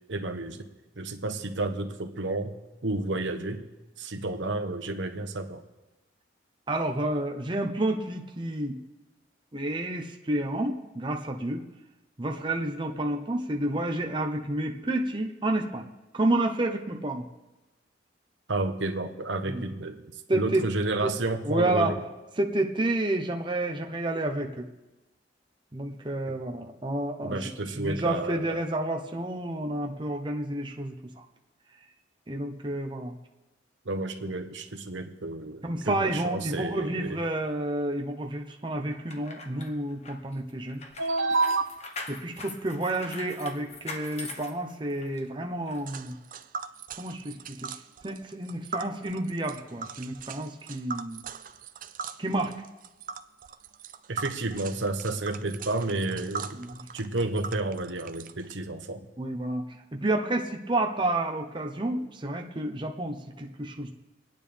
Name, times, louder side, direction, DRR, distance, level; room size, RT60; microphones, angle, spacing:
voice 1, 0.1-0.7 1.0-2.6 2.8-3.6 4.0-5.6 18.5-20.0 20.3-22.0 27.2-28.6 33.8-37.2 41.0-41.7 54.1-56.6 56.9-59.1, right 2 dB, 90° right, 6 dB, 1.1 m, -30 dB
voice 2, 6.7-8.8 9.5-11.6 12.2-15.9 16.1-17.2 19.4-19.6 20.3-20.6 21.0-21.1 21.4-21.9 22.4-24.7 25.7-31.2 32.3-33.2 35.6-40.8 42.1-46.2 47.0-47.7 48.0-51.2 52.2-52.5 56.5-56.8 59.2-59.6 59.9-63.9, right 1 dB, 25° right, 2 dB, 0.9 m, -30 dB
sound 1, 38.9-45.2 45.7-45.8, left 3 dB, 35° left, 1.3 m, -42 dB
Tick, 45.9-58.5, right 6 dB, 45° right, 0.5 m, -41 dB
27.5 x 9.4 x 3.5 m, 1.1 s
head